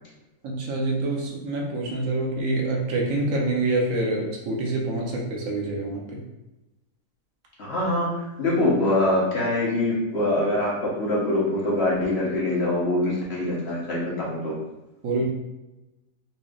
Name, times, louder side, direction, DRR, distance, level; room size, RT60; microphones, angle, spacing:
voice 1, 0.4-6.2 15.0-15.3, right 2 dB, 70° right, -2 dB, 1.1 m, -26 dB
voice 2, 7.6-14.5, left 1 dB, 50° left, -5 dB, 1.1 m, -24 dB
4.1 x 3.2 x 2.3 m, 1.0 s
omnidirectional pair, 1.5 m